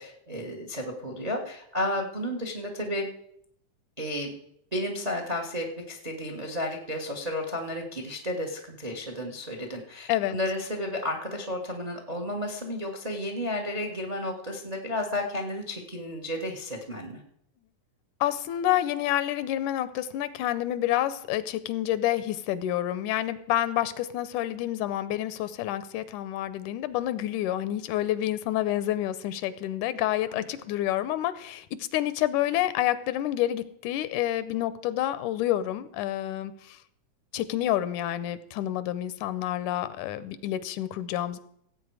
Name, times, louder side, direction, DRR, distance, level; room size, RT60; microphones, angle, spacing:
voice 1, 0.0-3.1 4.0-4.3 4.7-17.2 30.3-30.4, left 1 dB, 80° right, 3 dB, 0.3 m, -32 dB
voice 2, 18.2-36.8 37.3-41.4, left 13 dB, 90° left, 15 dB, 2.2 m, -28 dB
16.5 x 8.2 x 4.7 m, 0.70 s
omnidirectional pair, 3.4 m